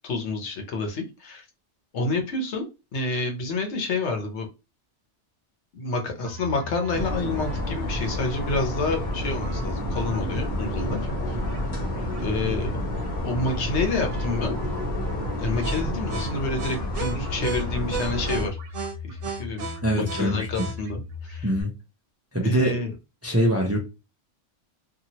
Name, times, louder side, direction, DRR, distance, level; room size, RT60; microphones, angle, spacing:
voice 1, 0.0-1.5 1.9-4.5 5.7-11.0 11.3-11.4 12.1-12.8 13.2-14.5 15.4-18.6 19.0-21.5 22.4-22.9, left 3 dB, 75° left, 1.1 m, -29 dB
sound 1, 6.3-21.6, left 1 dB, 80° right, 1.0 m, -36 dB
sound 2, 6.9-18.5, equal, 45° left, 1.1 m, -30 dB
voice 2, 19.8-20.7 21.4-21.7 22.3-22.8 23.2-23.8, equal, 20° right, 0.4 m, -23 dB
2.8 x 2.5 x 2.8 m
omnidirectional pair, 1.2 m